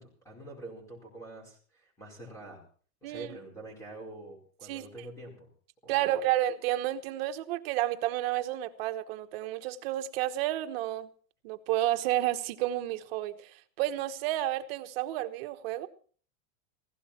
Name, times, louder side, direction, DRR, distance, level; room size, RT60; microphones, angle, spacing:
voice 1, 0.0-2.6 3.0-5.5 5.8-6.2, right 2 dB, 5° left, 4.8 m, -46 dB
voice 2, 3.0-3.4 4.7-4.9 5.9-11.1 11.4-15.9, right 14 dB, 45° right, 1.2 m, -31 dB
17.0 x 16.0 x 4.3 m
supercardioid pair, 170°, 40 cm